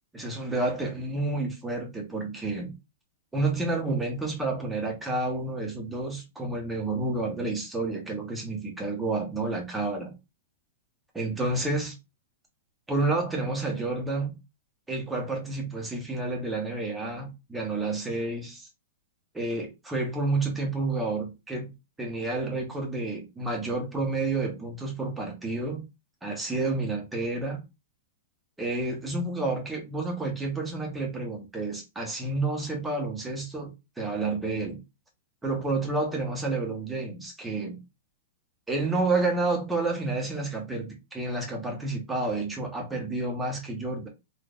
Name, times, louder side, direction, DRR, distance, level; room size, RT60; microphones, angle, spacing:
voice 1, 0.1-2.7 3.3-10.1 11.1-12.0 12.9-14.4 14.9-18.7 19.3-21.7 22.0-25.9 26.2-27.6 28.6-34.8 35.4-37.8 38.7-44.1, right 2 dB, 5° right, 1.0 m, -30 dB
3.6 x 2.5 x 2.5 m
supercardioid pair, 155°, 0 cm